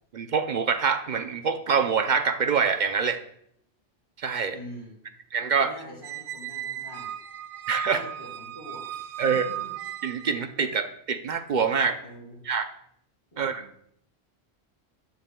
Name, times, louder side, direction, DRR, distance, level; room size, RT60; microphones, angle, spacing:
voice 1, 0.1-3.2 4.2-4.6 5.3-5.7 7.7-8.0 9.2-9.5 10.0-12.0 12.5-12.6 13.4-13.6, right 6 dB, 55° right, 8 dB, 0.6 m, -25 dB
voice 2, 4.5-5.0 5.6-7.1 7.8-9.7 12.0-12.4 13.3-13.7, equal, 30° left, -8 dB, 4.6 m, -45 dB
Squeak, 6.0-10.5, right 10 dB, 80° right, 0.9 m, -36 dB
13.0 x 9.2 x 2.2 m, 0.69 s
omnidirectional pair, 1.1 m